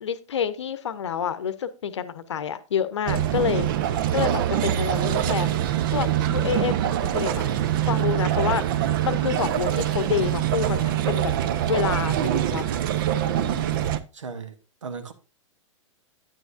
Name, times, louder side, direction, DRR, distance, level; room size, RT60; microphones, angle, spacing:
voice 1, 0.0-3.7 4.1-7.5 7.9-8.6 9.0-11.3 11.7-12.8, left 8 dB, 60° left, 0.8 m, -28 dB
sound 1, 3.1-14.0, right 11 dB, 40° right, 0.6 m, -24 dB
voice 2, 13.2-13.9 14.1-14.6 14.8-15.1, right 5 dB, 70° right, 1.1 m, -36 dB
9.6 x 9.3 x 2.5 m
figure-of-eight pair, 105°, 17 cm